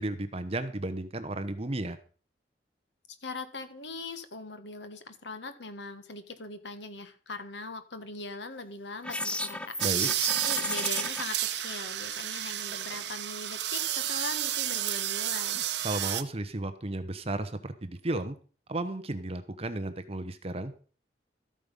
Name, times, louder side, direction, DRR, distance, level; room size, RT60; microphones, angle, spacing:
voice 1, 0.0-2.0 9.8-10.1 15.5-18.4 18.7-20.7, right 2 dB, 35° right, 11 dB, 0.9 m, -34 dB
voice 2, 3.2-9.7 10.4-15.6, left 3 dB, 85° left, 9 dB, 1.5 m, -40 dB
sound 1, 9.0-11.2, left 1 dB, 5° left, 0.8 m, -34 dB
sound 2, 9.8-16.2, right 12 dB, 75° right, 0.9 m, -31 dB
13.5 x 8.7 x 5.4 m, 0.40 s
head